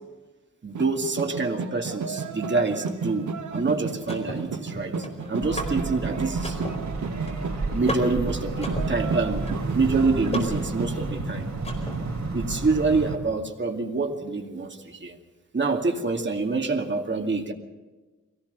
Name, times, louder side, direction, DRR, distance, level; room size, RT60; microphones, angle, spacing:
voice 1, 0.6-5.0 5.3-6.6 7.7-9.5 9.7-11.5 12.3-15.1 15.5-17.5, right 3 dB, 35° right, 3 dB, 2.4 m, -26 dB
sound 1, 0.7-10.9, right 5 dB, 70° right, 1.5 m, -33 dB
Car / Mechanisms, 3.3-12.3, left 1 dB, 20° left, 4.6 m, -37 dB
sound 2, 5.4-13.2, right 3 dB, 55° right, 4.0 m, -31 dB
23.0 x 18.0 x 6.9 m, 1.3 s
wide cardioid pair, 140°, 31 cm